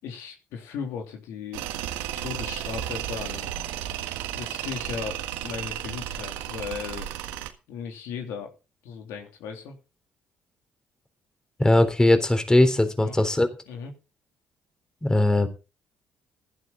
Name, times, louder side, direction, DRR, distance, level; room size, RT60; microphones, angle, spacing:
voice 1, 0.0-1.6 2.2-3.5 4.3-7.1 7.7-8.6 8.8-9.8 13.0-13.1 13.7-13.9, left 6 dB, 80° left, 3 dB, 3.1 m, -36 dB
Tools, 1.5-7.5, right 11 dB, 85° right, 1.6 m, -33 dB
voice 2, 11.6-13.5 15.0-15.5, left 1 dB, 15° left, 8 dB, 3.7 m, -20 dB
15.5 x 11.5 x 4.0 m, 0.31 s
supercardioid pair, 60°, 5 cm